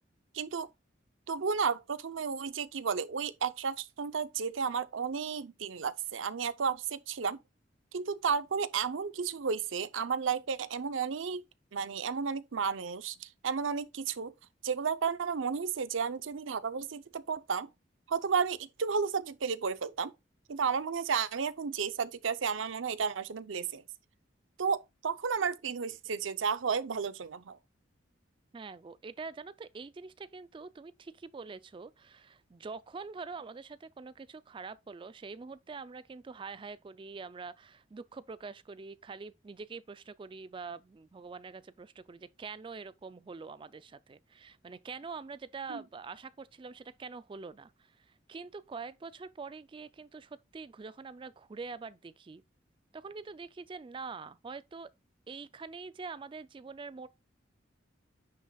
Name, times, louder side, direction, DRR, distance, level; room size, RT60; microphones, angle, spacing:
voice 1, 0.3-0.7 1.3-7.4 7.9-11.4 11.7-14.3 14.6-17.7 18.1-20.1 20.5-23.8 24.6-27.6 45.7-45.8, right 6 dB, 90° right, 0.6 m, -32 dB
voice 2, 28.5-52.4 52.9-54.9 55.3-57.1, right 4 dB, 25° right, 0.3 m, -45 dB
9.8 x 6.0 x 2.3 m
head